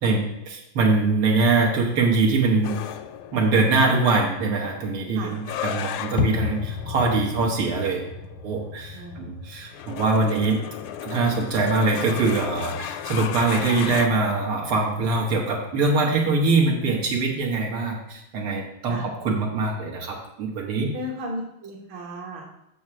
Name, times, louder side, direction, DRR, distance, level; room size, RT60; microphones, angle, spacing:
voice 1, 0.0-2.7 3.3-8.0 8.4-10.6 11.0-20.9, right 3 dB, 85° right, -1 dB, 2.4 m, -23 dB
sound 1, 2.6-14.1, left 8 dB, 90° left, 1.5 m, -33 dB
voice 2, 8.9-9.4 18.9-19.0 20.9-22.4, equal, 65° right, 0 dB, 2.0 m, -35 dB
6.7 x 5.3 x 6.0 m, 0.83 s
omnidirectional pair, 2.3 m